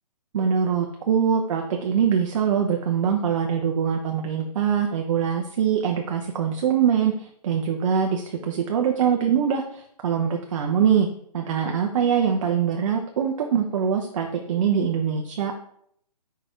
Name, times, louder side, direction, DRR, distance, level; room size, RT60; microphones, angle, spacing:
voice 1, 0.3-11.1 11.3-15.5, right 7 dB, 50° right, 3 dB, 0.8 m, -23 dB
5.1 x 4.6 x 5.0 m, 0.68 s
hypercardioid pair, 155°, 21 cm